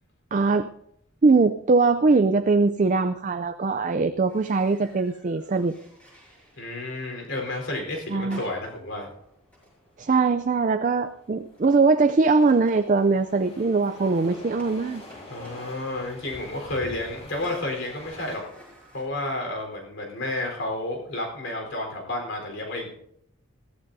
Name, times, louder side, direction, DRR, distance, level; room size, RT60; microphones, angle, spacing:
voice 1, 0.3-0.7 1.2-5.7 8.1-8.4 10.0-15.0, right 4 dB, 40° right, 8 dB, 0.4 m, -21 dB
sound 1, 4.3-19.0, left 1 dB, 5° left, 6.0 m, -52 dB
sound 2, 5.0-18.4, left 1 dB, 30° left, 4.0 m, -46 dB
voice 2, 6.6-9.1 15.3-18.4 18.9-22.9, left 2 dB, 65° left, 2 dB, 4.1 m, -31 dB
21.5 x 14.5 x 2.7 m, 0.73 s
head